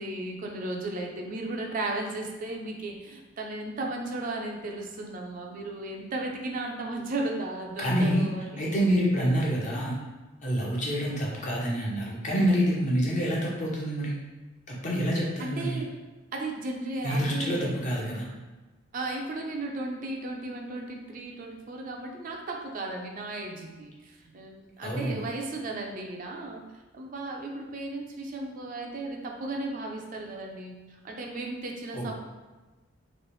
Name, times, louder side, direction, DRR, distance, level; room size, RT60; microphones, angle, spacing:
voice 1, 0.0-8.7 15.4-15.9 16.3-17.7 18.9-26.6 26.9-32.1, right 2 dB, 45° right, 1 dB, 0.4 m, -35 dB
voice 2, 7.8-8.3 8.6-9.9 10.4-14.2 14.7-15.8 17.0-18.3 24.8-25.2 31.9-32.1, equal, 40° left, -4 dB, 0.8 m, -27 dB
3.1 x 2.9 x 3.0 m, 1.2 s
head